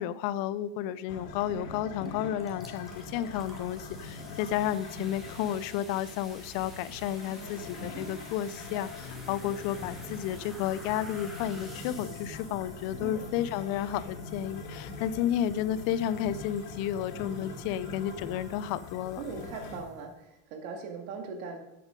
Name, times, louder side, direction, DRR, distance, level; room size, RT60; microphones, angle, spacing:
voice 1, 0.0-19.2, left 11 dB, 55° left, 17 dB, 0.6 m, -32 dB
sound 1, 1.1-19.8, left 3 dB, 75° left, 2.8 m, -43 dB
sound 2, 2.1-2.2 2.4-20.1, equal, ahead, 2.3 m, -52 dB
sound 3, 9.0-13.0, left 5 dB, 40° left, 3.2 m, -52 dB
voice 2, 19.2-21.6, right 4 dB, 80° right, 4 dB, 2.3 m, -40 dB
8.6 x 8.3 x 5.2 m, 0.89 s
supercardioid pair, 140°, 41 cm